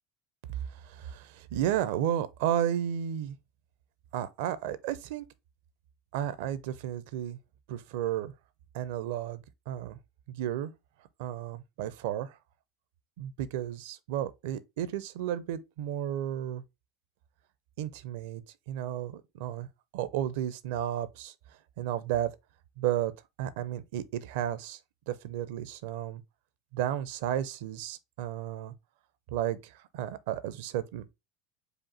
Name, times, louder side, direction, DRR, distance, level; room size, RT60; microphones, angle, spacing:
voice 1, 0.7-3.4 4.1-5.2 6.1-7.4 7.7-8.3 8.7-10.0 10.3-10.7 11.2-12.4 13.2-16.6 17.8-19.7 19.9-21.3 21.8-22.3 22.8-23.1 23.4-24.8 25.1-26.2 26.7-28.7 29.3-31.1, right 11 dB, 70° right, 0.5 m, -33 dB
4.9 x 2.4 x 4.1 m
hypercardioid pair, 80°, 0 cm